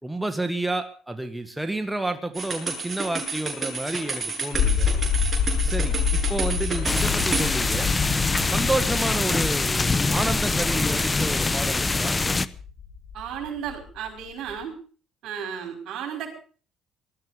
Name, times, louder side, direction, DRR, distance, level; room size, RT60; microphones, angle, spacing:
voice 1, 0.0-4.9 5.6-7.9 8.5-12.2, right 2 dB, 5° right, 7 dB, 1.8 m, -30 dB
sound 1, 2.3-7.5, right 3 dB, 25° right, 7.3 m, -30 dB
sound 2, 4.5-14.6, left 7 dB, 65° left, 2.5 m, -28 dB
sound 3, 6.9-12.5, left 3 dB, 20° left, 0.9 m, -24 dB
voice 2, 13.1-14.8 15.2-16.4, right 8 dB, 65° right, 4 dB, 5.6 m, -34 dB
19.0 x 13.5 x 5.2 m, 0.41 s
supercardioid pair, 80°, 0 cm